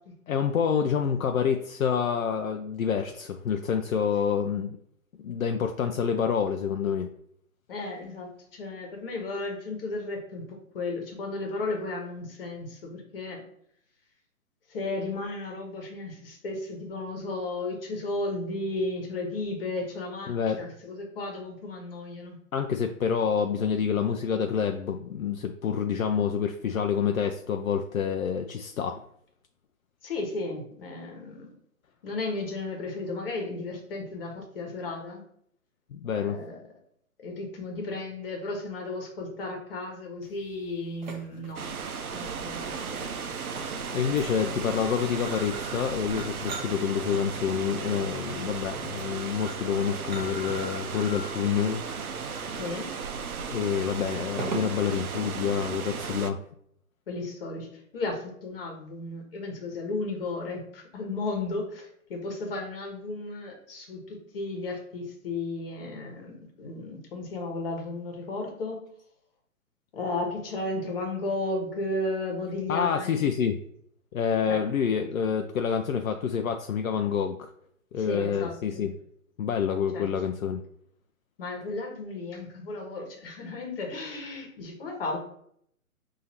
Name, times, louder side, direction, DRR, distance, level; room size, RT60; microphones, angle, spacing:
voice 1, 0.3-4.8 5.2-7.1 20.3-20.6 22.5-29.0 35.9-36.4 43.9-51.8 53.5-56.4 72.7-73.6 74.1-77.5 77.9-78.9 79.4-80.6, left 7 dB, 70° left, 5 dB, 0.5 m, -27 dB
voice 2, 7.7-13.4 14.7-22.4 30.0-31.5 32.0-35.2 36.2-36.6 37.2-41.7 42.1-43.3 44.4-44.5 52.5-52.9 57.1-68.8 69.9-73.4 74.5-74.6 78.0-78.9 79.9-80.1 81.4-85.2, left 2 dB, 40° left, 2 dB, 1.2 m, -34 dB
sound 1, 40.2-55.0, right 2 dB, 30° right, 0.7 m, -42 dB
sound 2, 41.6-56.3, right 5 dB, 80° right, 0.6 m, -35 dB
5.7 x 2.7 x 2.8 m, 0.68 s
figure-of-eight pair, 135°, 43 cm